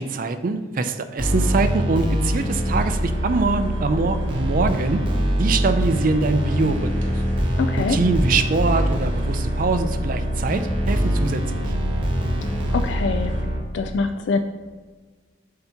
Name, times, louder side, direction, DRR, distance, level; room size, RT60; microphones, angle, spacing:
voice 1, 0.0-5.0 5.4-7.1 7.8-11.6, right 3 dB, 45° right, 9 dB, 0.4 m, -23 dB
sound 1, 1.2-13.6, equal, 25° right, 0.9 m, -24 dB
sound 2, 2.7-13.4, equal, 70° right, 1.1 m, -37 dB
voice 2, 7.6-8.0 12.7-13.3 13.7-14.4, left 4 dB, 65° left, 7 dB, 0.4 m, -24 dB
7.6 x 2.8 x 5.7 m, 1.4 s
head